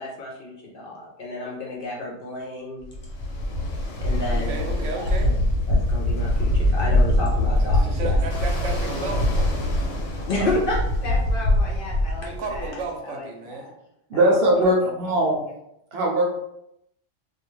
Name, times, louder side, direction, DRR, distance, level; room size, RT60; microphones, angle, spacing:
voice 1, 0.0-2.9 4.0-4.7 4.9-5.1 5.7-8.1 10.3-13.6 14.1-14.9, left 2 dB, 55° left, -2 dB, 0.7 m, -31 dB
Ocean, 2.9-12.8, left 1 dB, 90° left, 0.9 m, -23 dB
voice 2, 4.3-5.4 7.7-9.6 12.2-13.7, right 3 dB, 90° right, 1 dB, 1.0 m, -33 dB
voice 3, 14.1-15.4 15.9-16.2, right 1 dB, 60° right, -2 dB, 0.8 m, -20 dB
2.4 x 2.2 x 3.1 m, 0.79 s
omnidirectional pair, 1.2 m